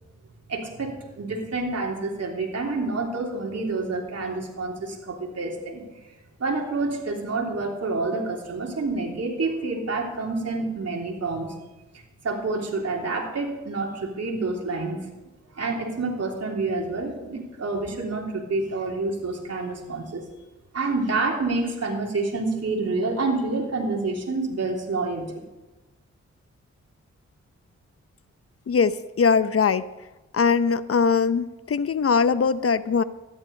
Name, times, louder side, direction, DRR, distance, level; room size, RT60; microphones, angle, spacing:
voice 1, 0.5-5.8 6.4-11.5 12.2-15.1 15.5-20.2 20.7-25.3, right 3 dB, 55° right, -1 dB, 3.2 m, -28 dB
voice 2, 28.7-29.8 30.3-33.0, left 5 dB, 50° left, 14 dB, 0.7 m, -21 dB
13.5 x 11.0 x 5.3 m, 1.1 s
cardioid pair, 55°, 30 cm